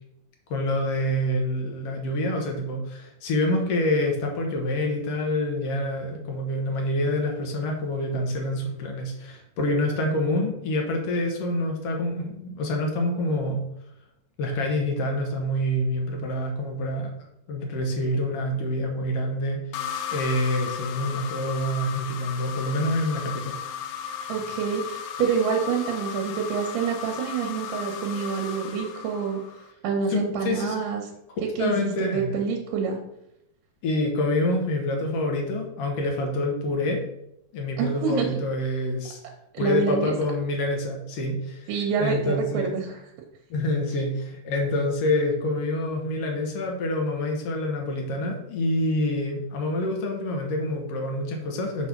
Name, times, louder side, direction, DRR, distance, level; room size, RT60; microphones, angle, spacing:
voice 1, 0.5-13.6 14.4-17.1 17.5-23.6 30.1-30.8 31.6-32.3 33.8-37.0 37.5-39.2 39.6-41.7 42.0-42.8 43.5-51.9, left 1 dB, 65° left, 1 dB, 1.5 m, -27 dB
sound 1, 19.7-29.7, left 8 dB, 85° left, 2.4 m, -35 dB
voice 2, 24.3-29.4 29.8-31.0 31.6-33.0 37.8-38.3 39.5-40.1 41.7-43.0, right 6 dB, 75° right, 1 dB, 2.3 m, -27 dB
6.2 x 3.4 x 5.8 m, 0.81 s
omnidirectional pair, 4.0 m